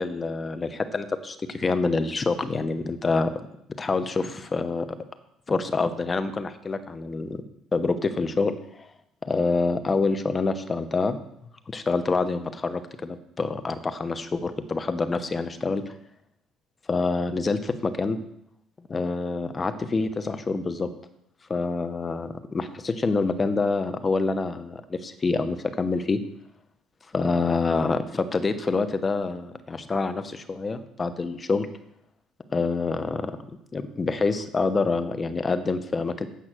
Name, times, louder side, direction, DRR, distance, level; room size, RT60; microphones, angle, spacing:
voice 1, 0.0-3.5 3.8-4.9 5.5-7.4 7.7-8.9 9.2-11.2 11.7-15.9 16.9-18.2 18.9-20.9 21.5-26.2 27.1-31.7 32.5-33.4 33.7-36.3, left 3 dB, 25° left, 10 dB, 0.9 m, -26 dB
8.3 x 5.8 x 7.6 m, 0.76 s
cardioid pair, 110°, 0 cm